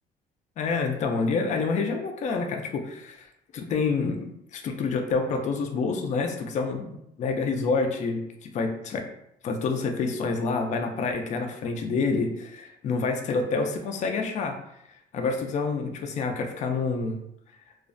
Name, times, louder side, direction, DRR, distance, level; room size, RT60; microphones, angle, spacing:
voice 1, 0.6-3.3 3.5-9.1 9.4-14.6 15.1-17.2, left 4 dB, 45° left, 4 dB, 0.4 m, -28 dB
2.4 x 2.1 x 2.4 m, 0.76 s
cardioid pair, 110°, 17 cm